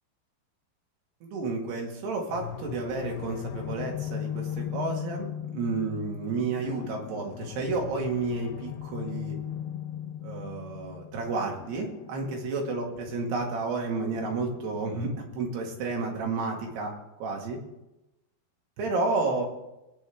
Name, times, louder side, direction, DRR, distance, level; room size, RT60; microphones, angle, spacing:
voice 1, 1.2-5.3 5.5-9.4 10.2-16.9 17.2-17.6 18.8-19.5, right 3 dB, 70° right, 0 dB, 4.1 m, -31 dB
sound 1, 2.3-15.1, left 10 dB, 90° left, 2.8 m, -38 dB
20.5 x 9.6 x 3.6 m, 0.94 s
omnidirectional pair, 4.9 m